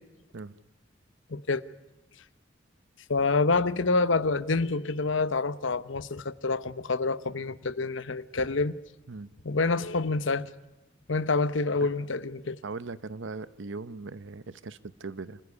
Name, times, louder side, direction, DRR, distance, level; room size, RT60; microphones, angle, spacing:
voice 1, 1.3-1.6 3.1-8.7 9.4-10.5 11.1-12.6, left 3 dB, 75° left, 0.9 m, -27 dB
voice 2, 12.6-15.4, right 3 dB, 70° right, 0.7 m, -39 dB
27.5 x 15.0 x 9.6 m
head